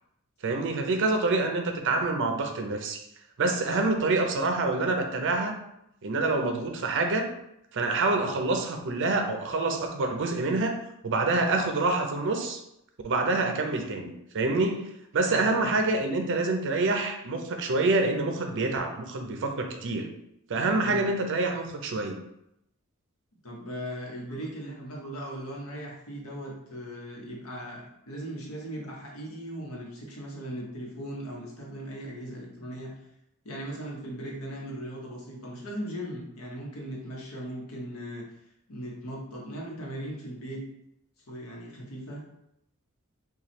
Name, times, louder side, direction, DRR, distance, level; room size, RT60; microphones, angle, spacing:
voice 1, 0.4-3.0 3.4-5.6 6.0-7.3 7.7-10.8 11.0-12.6 13.0-20.1 20.5-22.2, right 3 dB, 60° right, 4 dB, 0.5 m, -27 dB
voice 2, 3.4-3.8 15.3-15.8 20.8-21.1 23.4-33.0 33.4-38.3 38.7-40.6 41.3-42.2, equal, 75° left, -2 dB, 1.0 m, -38 dB
3.0 x 2.3 x 4.1 m, 0.81 s
head